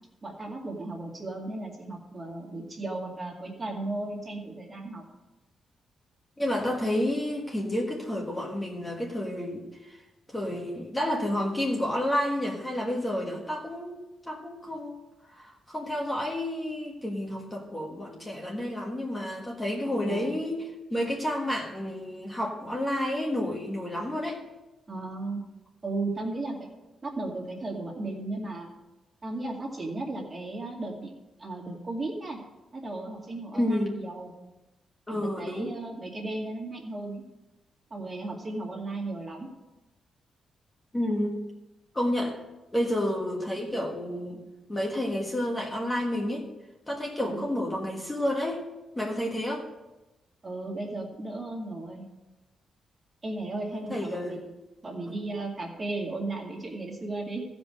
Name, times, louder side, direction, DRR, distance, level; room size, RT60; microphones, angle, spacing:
voice 1, 0.2-5.0 19.8-20.3 24.9-25.4 25.8-26.7 27.0-28.7 29.2-31.1 31.4-32.4 32.7-34.3 35.1-37.2 37.9-39.5 47.2-47.4 50.4-52.1 53.2-54.5 54.8-57.4, right 2 dB, 25° right, -1 dB, 2.3 m, -35 dB
voice 2, 6.4-10.0 10.3-15.0 15.3-24.4 33.5-34.0 35.1-35.8 40.9-41.4 41.9-42.4 42.7-44.4 44.7-46.5 46.9-48.6 48.9-49.6 53.9-54.4, left 1 dB, 15° left, -1 dB, 1.5 m, -30 dB
15.0 x 5.3 x 6.4 m, 1.0 s
cardioid pair, 135°, 0 cm